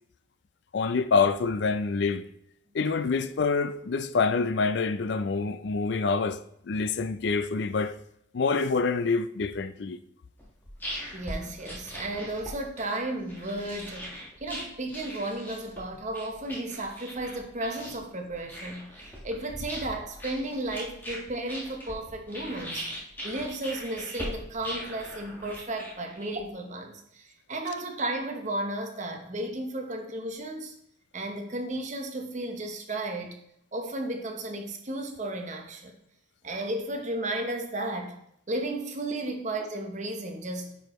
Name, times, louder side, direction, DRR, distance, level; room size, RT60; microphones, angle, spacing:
voice 1, 0.7-2.3 2.7-6.4 6.7-7.9 8.3-10.0, left 4 dB, 55° left, 0.4 m, -26 dB
sound 1, 10.4-26.5, equal, 10° left, 1.5 m, -40 dB
voice 2, 11.1-14.1 14.4-22.8 23.2-30.7 31.1-33.4 33.7-35.9 36.4-38.2 38.5-40.8, right 1 dB, 35° right, 0.9 m, -34 dB
9.0 x 4.9 x 3.1 m
head